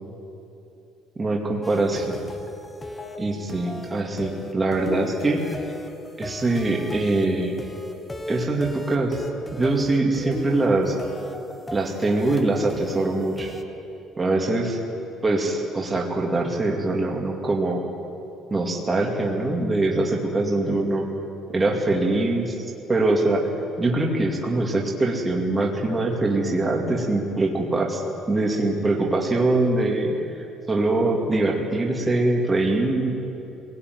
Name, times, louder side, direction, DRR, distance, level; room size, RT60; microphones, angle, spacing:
voice 1, 1.2-2.2 3.2-5.5 6.2-7.5 8.3-9.2 9.5-11.0 11.7-13.5 14.2-14.8 15.2-17.8 18.5-21.1 21.5-22.6 22.9-23.4 23.8-28.0 28.3-33.1, right 2 dB, 15° right, 0 dB, 2.3 m, -23 dB
sound 1, 1.6-13.6, left 1 dB, 10° left, 1.2 m, -37 dB
23.5 x 18.0 x 9.5 m, 3.0 s
cardioid pair, 180°, 0 cm